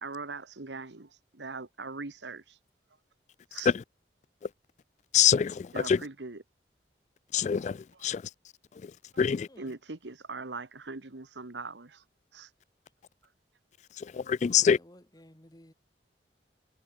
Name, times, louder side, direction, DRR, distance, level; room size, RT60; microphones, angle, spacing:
voice 1, 0.0-2.6 3.5-3.7 5.7-6.4 9.6-12.0 12.3-12.5, right 3 dB, 85° right, 1.5 m, -41 dB
voice 2, 5.1-6.0 7.3-8.2 9.2-9.5 14.0-14.8, left 8 dB, 40° left, 0.3 m, -25 dB
voice 3, 14.4-15.7, left 1 dB, 20° left, 2.3 m, -55 dB
head